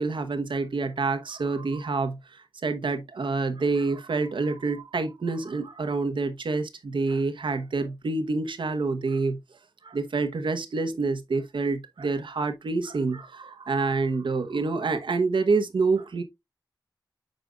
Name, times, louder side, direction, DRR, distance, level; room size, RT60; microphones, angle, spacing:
voice 1, 0.0-2.2 2.6-9.4 9.8-16.2, right 3 dB, 85° right, 1.0 m, -27 dB
8.8 x 5.0 x 2.4 m
wide cardioid pair, 70°, 8 cm